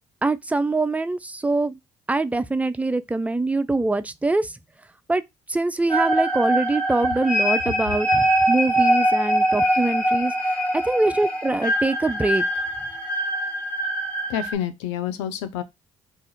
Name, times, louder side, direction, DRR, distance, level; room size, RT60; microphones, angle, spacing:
voice 1, 0.2-1.8 2.1-4.6 5.1-5.2 5.5-10.6 10.8-12.4, right 2 dB, 10° right, 0.3 m, -24 dB
sound 1, 5.9-14.5, right 1 dB, 10° left, 1.2 m, -23 dB
voice 2, 14.3-15.6, left 10 dB, 85° left, 0.4 m, -28 dB
2.5 x 2.4 x 4.0 m
hypercardioid pair, 55°, 16 cm